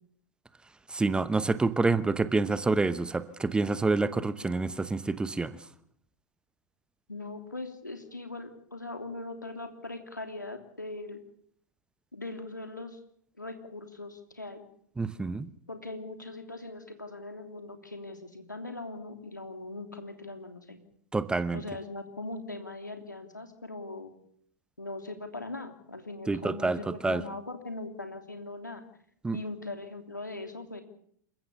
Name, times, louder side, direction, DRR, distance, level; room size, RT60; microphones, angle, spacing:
voice 1, 0.9-5.6 15.0-15.5 21.1-21.6 26.3-27.2 29.2-29.4, right 3 dB, 10° right, 0.9 m, -27 dB
voice 2, 7.1-11.2 12.1-13.0 13.4-14.6 15.7-20.8 21.5-24.1 24.8-28.8 29.3-30.8, left 2 dB, 85° left, 3.1 m, -40 dB
28.0 x 15.0 x 6.9 m
figure-of-eight pair, 95°, 10 cm